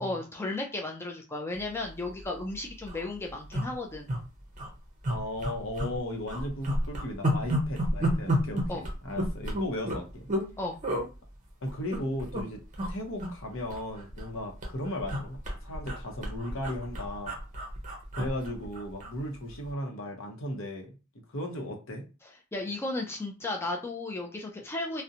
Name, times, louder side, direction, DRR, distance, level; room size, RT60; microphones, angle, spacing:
voice 1, 0.0-4.2 8.7-8.8 10.6-10.8 22.5-25.0, left 2 dB, 10° left, 0 dB, 0.3 m, -34 dB
sound 1, 2.1-2.2 2.5-2.6 2.8-3.0 3.5-4.2 4.5-4.7 5.0-6.0 6.3-10.5 10.8-11.1 11.7-12.4 12.7-12.9 13.2-14.3 14.6-19.2 19.5-19.7, equal, 35° right, 0.6 m, -31 dB
voice 2, 5.1-10.3 11.6-12.6 12.9-17.3 18.1-21.0 21.3-22.1, left 1 dB, 65° left, 1 dB, 0.7 m, -36 dB
2.5 x 2.1 x 2.7 m, 0.31 s
head